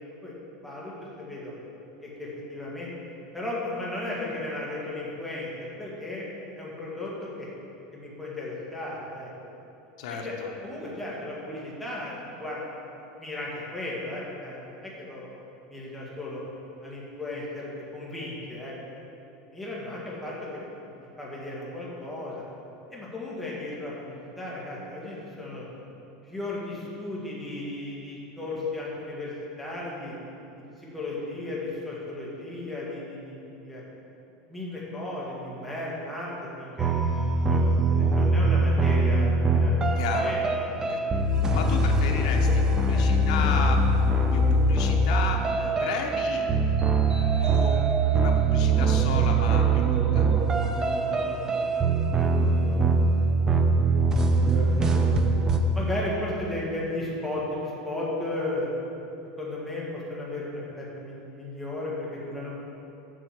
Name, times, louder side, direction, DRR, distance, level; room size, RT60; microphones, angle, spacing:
voice 1, 0.6-1.5 2.0-2.9 3.3-6.3 6.5-7.5 7.9-9.3 10.1-15.3 15.7-16.4 16.8-18.8 19.5-20.6 21.2-22.3 22.9-25.7 26.3-29.3 29.6-30.1 30.8-33.8 34.5-36.3 36.6-36.9 37.5-39.9 40.2-40.4 41.3-41.7 42.1-43.1 50.3-50.5 51.0-51.1 51.4-51.5 52.1-52.8 53.4-53.5 53.8-58.7 59.4-62.5, left 2 dB, ahead, -6 dB, 1.8 m, -35 dB
voice 2, 10.0-10.5 40.0-40.3 40.9-43.8 44.3-46.5 47.4-50.2, left 5 dB, 80° left, 1 dB, 0.9 m, -33 dB
sound 1, 36.8-55.6, right 2 dB, 15° right, 0.5 m, -23 dB
7.6 x 6.0 x 7.3 m, 2.9 s
supercardioid pair, 165°, 4 cm